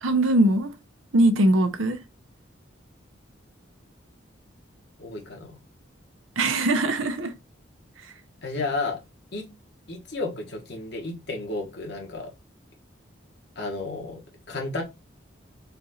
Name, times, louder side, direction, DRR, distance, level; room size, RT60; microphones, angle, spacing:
voice 1, 0.0-0.7 1.1-2.0 6.4-7.3 8.0-8.1, right 1 dB, 85° right, 0.8 m, -21 dB
voice 2, 5.0-5.6 8.4-9.0 9.3-9.5 9.9-12.3 13.5-14.2 14.5-14.8, left 3 dB, 55° left, 1.4 m, -32 dB
4.3 x 2.5 x 4.2 m
head